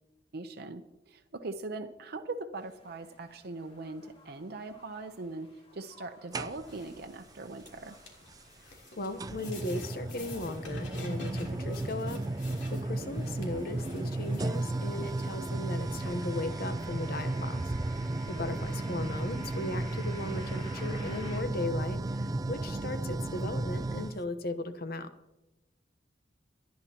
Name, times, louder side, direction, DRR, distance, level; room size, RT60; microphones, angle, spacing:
voice 1, 0.3-0.8 1.1-8.0 17.5-17.8 18.5-18.7, right 3 dB, 60° right, 5 dB, 0.7 m, -41 dB
sound 1, 2.5-21.4, left 1 dB, 35° left, 3.7 m, -55 dB
sound 2, 6.3-7.0 8.3-8.4 9.2-24.2, right 2 dB, 20° right, 0.4 m, -34 dB
sound 3, 6.6-16.5, left 3 dB, 75° left, 3.4 m, -51 dB
voice 2, 8.6-17.7 18.3-25.1, left 2 dB, 55° left, 9 dB, 1.0 m, -37 dB
27.0 x 10.5 x 2.9 m, 1.0 s
head